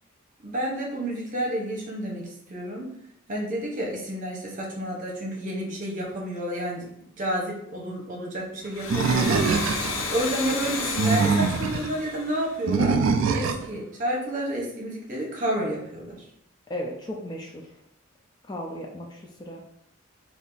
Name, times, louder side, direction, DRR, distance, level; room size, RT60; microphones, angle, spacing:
voice 1, 0.4-2.9 3.3-6.9 7.2-9.6 10.1-13.0 13.3-16.2, right 1 dB, 40° right, -2 dB, 0.9 m, -30 dB
Domestic sounds home sounds, 8.6-13.1, left 4 dB, 75° left, 0.5 m, -32 dB
Animal, 8.9-10.1 10.8-11.9 12.7-13.7, right 5 dB, 75° right, 0.3 m, -23 dB
voice 2, 16.7-17.8 18.5-19.6, equal, 20° left, 0 dB, 0.3 m, -35 dB
2.7 x 2.5 x 3.8 m, 0.74 s
head